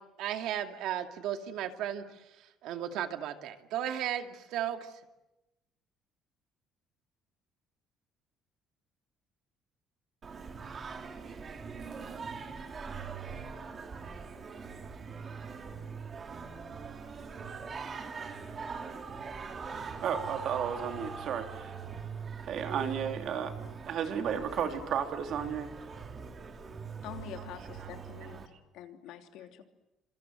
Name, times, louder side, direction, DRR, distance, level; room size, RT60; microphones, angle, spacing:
voice 1, 0.0-4.9, right 10 dB, 65° right, 7 dB, 2.4 m, -35 dB
Singing, 10.2-28.5, right 5 dB, 25° right, 2.4 m, -42 dB
voice 2, 19.9-21.8 22.5-23.5 23.9-25.7 27.8-27.9, right 8 dB, 50° right, 6 dB, 3.1 m, -33 dB
voice 3, 27.0-28.4 28.7-29.6, left 10 dB, 75° left, 6 dB, 3.0 m, -45 dB
29.0 x 26.5 x 7.7 m, 0.95 s
cardioid pair, 175°, 0 cm